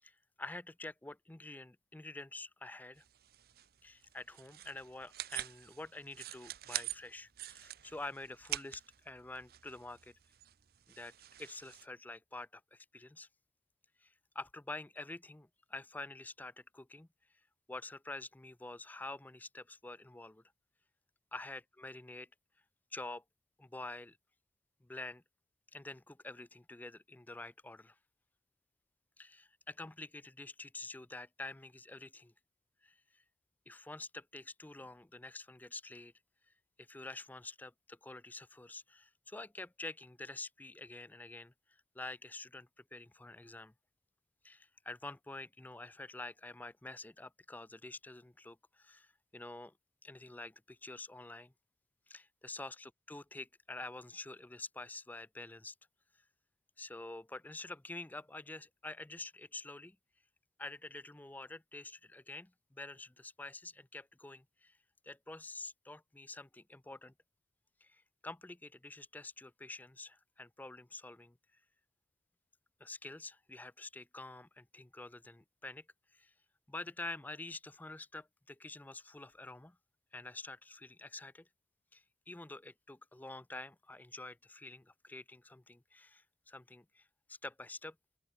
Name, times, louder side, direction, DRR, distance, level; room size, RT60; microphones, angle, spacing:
voice 1, 0.0-3.0 3.8-10.1 10.9-11.1 11.4-13.3 14.0-17.1 17.7-20.4 21.3-22.3 22.9-23.2 23.6-24.2 24.8-25.2 25.7-28.0 29.2-32.3 32.8-33.2 33.7-36.1 36.8-41.5 41.9-43.7 44.4-49.7 50.0-51.5 52.1-55.7 56.8-60.0 60.6-64.8 65.0-67.1 67.8-71.4 72.8-75.9 76.1-76.3 76.7-79.8 80.1-81.5 81.9-88.0, left 2 dB, 10° left, 0.4 m, -48 dB
sound 1, 3.0-11.9, right 13 dB, 55° right, 0.7 m, -46 dB
open air
head